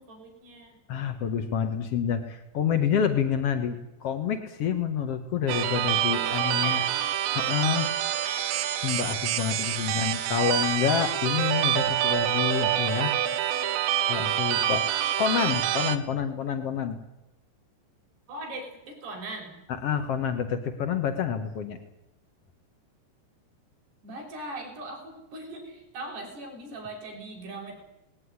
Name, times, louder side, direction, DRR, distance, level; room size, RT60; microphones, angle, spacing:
voice 1, 0.0-0.8 6.0-7.0 9.8-10.1 18.3-19.6 24.0-27.7, right 2 dB, 60° right, 1 dB, 7.7 m, -40 dB
voice 2, 0.9-6.8 7.3-7.9 8.8-13.1 14.1-14.8 15.2-17.0 19.8-21.8, left 8 dB, 80° left, 7 dB, 1.3 m, -28 dB
sound 1, 5.5-16.0, right 11 dB, 85° right, 3.4 m, -27 dB
19.5 x 17.5 x 9.7 m, 0.88 s
omnidirectional pair, 5.2 m